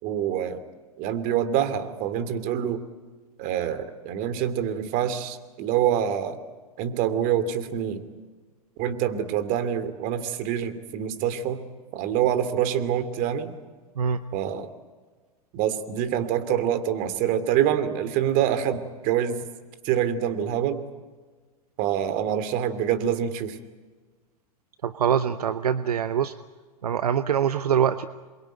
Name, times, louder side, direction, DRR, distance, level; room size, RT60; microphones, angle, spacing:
voice 1, 0.0-0.6 1.0-2.8 3.4-6.4 6.8-8.0 8.8-11.7 11.9-13.5 14.3-14.7 15.5-19.4 19.8-20.8 21.8-23.6, right 10 dB, 45° right, 12 dB, 2.7 m, -26 dB
voice 2, 24.8-26.3 26.8-28.1, right 8 dB, 75° right, 12 dB, 0.9 m, -24 dB
27.5 x 23.0 x 9.1 m, 1.4 s
hypercardioid pair, 100°, 20 cm